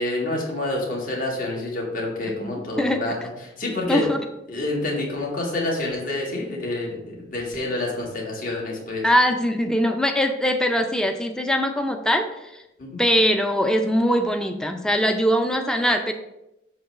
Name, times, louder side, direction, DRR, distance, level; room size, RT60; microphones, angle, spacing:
voice 1, 0.0-4.0 4.5-9.0 12.8-13.0, left 2 dB, 50° left, -2 dB, 1.6 m, -28 dB
voice 2, 2.3-3.2 3.9-4.2 9.0-12.6 13.0-16.1, equal, 5° left, 5 dB, 0.4 m, -22 dB
6.8 x 3.1 x 5.7 m, 0.90 s
head